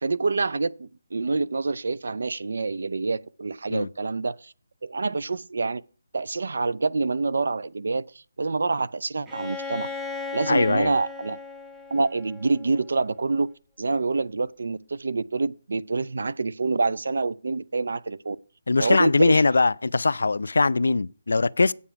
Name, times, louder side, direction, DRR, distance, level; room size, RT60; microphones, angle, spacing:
voice 1, 0.0-4.5 4.8-5.8 6.1-9.9 10.3-11.4 11.9-13.5 13.8-18.4 18.8-19.5, right 3 dB, 75° right, 0.4 m, -26 dB
Bowed string instrument, 9.3-13.0, left 4 dB, 5° right, 0.5 m, -36 dB
voice 2, 10.5-10.9 18.7-21.7, left 3 dB, 90° left, 0.3 m, -21 dB
8.5 x 7.0 x 5.7 m
hypercardioid pair, 175°, 0 cm